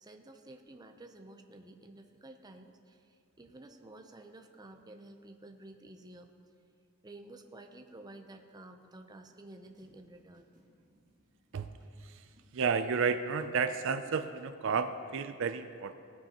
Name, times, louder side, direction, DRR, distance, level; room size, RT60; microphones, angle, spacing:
voice 1, 0.0-6.3 7.0-10.5, right 2 dB, 20° right, 5 dB, 0.6 m, -52 dB
sound 1, 9.3-14.3, equal, 40° right, 2.1 m, -60 dB
voice 2, 12.5-15.9, right 5 dB, 65° right, 10 dB, 0.4 m, -32 dB
17.5 x 9.3 x 3.0 m, 2.3 s
head